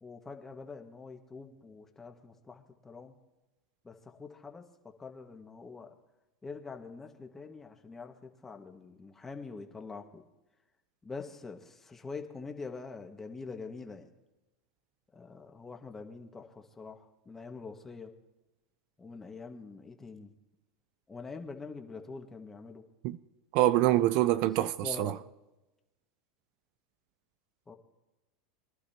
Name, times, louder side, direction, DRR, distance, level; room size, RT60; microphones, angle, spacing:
voice 1, 0.0-3.1 3.8-4.6 5.0-5.9 6.4-10.2 11.0-14.1 15.1-18.1 19.0-20.3 21.1-22.8 24.6-25.2 27.7-27.8, left 4 dB, 15° left, 1.8 m, -45 dB
voice 2, 23.5-25.1, right 14 dB, 60° right, 0.5 m, -25 dB
23.5 x 11.5 x 3.0 m
hypercardioid pair, 100°, 2 cm